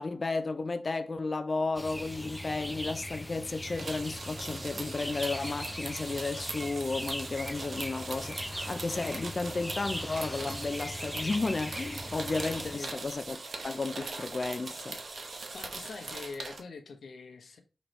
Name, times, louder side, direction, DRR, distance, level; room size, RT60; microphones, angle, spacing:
voice 1, 0.0-13.4 13.6-15.0, left 3 dB, 45° left, 0.4 m, -33 dB
sound 1, 1.8-12.8, equal, 5° left, 0.7 m, -40 dB
sound 2, 3.7-16.6, right 3 dB, 65° right, 0.9 m, -41 dB
voice 2, 15.5-17.6, left 4 dB, 85° left, 0.9 m, -44 dB
5.2 x 3.1 x 3.1 m
cardioid pair, 65°, 0 cm